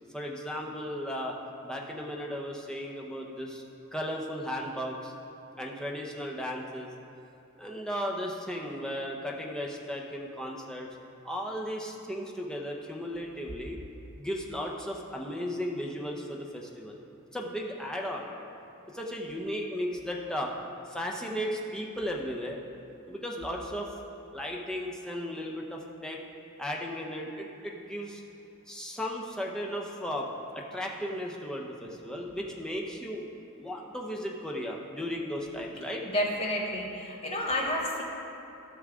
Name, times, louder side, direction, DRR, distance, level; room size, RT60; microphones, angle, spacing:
voice 1, 0.1-1.4 1.6-3.6 3.9-5.1 5.6-6.9 7.6-10.9 11.2-13.8 14.2-17.0 17.3-18.3 18.9-20.5 20.9-22.6 23.1-23.9 24.3-26.2 26.6-28.2 28.7-30.3 30.5-33.2 33.6-36.0, equal, 5° left, -1 dB, 0.7 m, -35 dB
voice 2, 36.0-38.0, left 1 dB, 25° left, -2 dB, 1.1 m, -30 dB
13.0 x 6.3 x 3.6 m, 2.8 s
head